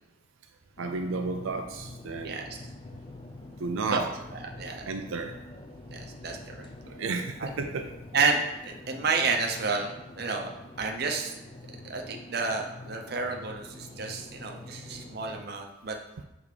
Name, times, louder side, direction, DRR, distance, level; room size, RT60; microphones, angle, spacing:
sound 1, 0.8-15.5, left 2 dB, 25° left, 0.5 m, -46 dB
voice 1, 0.8-2.4 3.6-4.1 4.8-5.4 6.9-7.9, right 3 dB, 90° right, 5 dB, 0.5 m, -32 dB
voice 2, 2.2-2.6 3.9-4.1 4.3-4.9 5.9-6.7 7.4-7.5 8.1-10.5 10.8-11.4 11.7-16.0, right 4 dB, 50° right, 2 dB, 0.8 m, -30 dB
6.6 x 3.6 x 5.0 m, 0.94 s
head